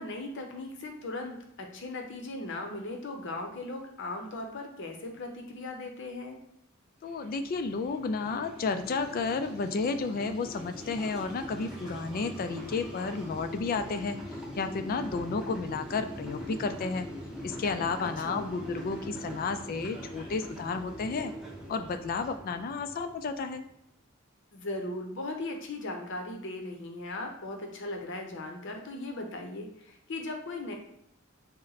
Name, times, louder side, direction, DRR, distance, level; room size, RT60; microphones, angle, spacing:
voice 1, 0.0-6.4 18.0-18.5 24.5-30.7, left 2 dB, 60° left, 3 dB, 0.7 m, -38 dB
voice 2, 7.0-17.1 17.4-21.3 21.7-23.6, left 4 dB, 45° left, 9 dB, 0.3 m, -32 dB
sound 1, 7.0-23.7, equal, 5° right, 0.7 m, -42 dB
4.1 x 2.1 x 3.9 m, 0.80 s
head